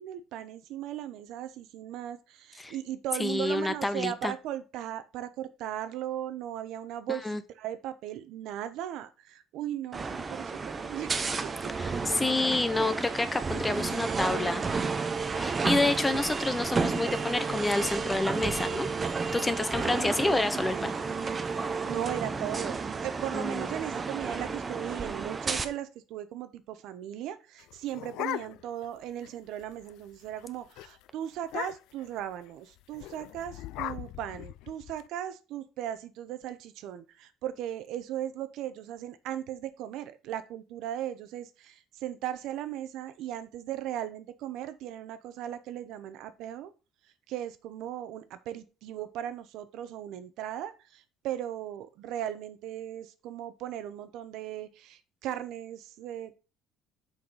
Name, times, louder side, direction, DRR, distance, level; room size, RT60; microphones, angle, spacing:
voice 1, 0.0-11.1 11.4-11.9 21.8-46.7 47.3-56.3, right 11 dB, 70° right, 12 dB, 0.9 m, -37 dB
voice 2, 3.2-4.3 7.2-7.4 11.8-14.6 15.4-18.9 19.3-20.9 23.3-23.7, left 2 dB, 10° left, 12 dB, 0.7 m, -28 dB
sound 1, 9.9-25.6, right 4 dB, 20° right, 0.7 m, -32 dB
sound 2, 18.8-22.6, right 1 dB, 5° right, 1.2 m, -49 dB
sound 3, 27.6-28.9 29.2-29.3 29.6-29.9 30.3-30.5 30.8-30.9 31.4-32.1 32.9-35.0, left 15 dB, 75° left, 0.3 m, -38 dB
6.3 x 5.8 x 4.9 m, 0.32 s
cardioid pair, 140°, 0 cm